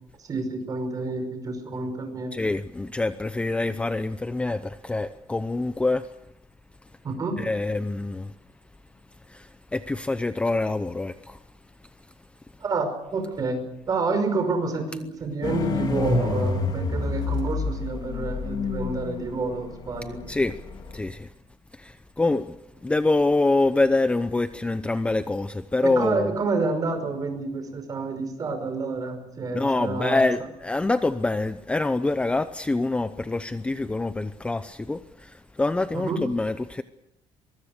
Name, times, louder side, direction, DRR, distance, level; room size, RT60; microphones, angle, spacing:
voice 1, 0.3-2.4 7.0-7.4 12.6-20.2 25.8-30.2 35.9-36.2, right 3 dB, 35° right, 5.6 m, -29 dB
voice 2, 2.3-6.1 7.4-8.3 9.3-11.4 20.3-20.6 20.9-21.3 21.7-22.6 22.8-26.3 29.5-36.8, left 2 dB, 10° left, 0.7 m, -25 dB
sound 1, 15.4-21.0, left 3 dB, 40° left, 3.6 m, -28 dB
23.5 x 22.5 x 6.7 m
cardioid pair, 145°, 11 cm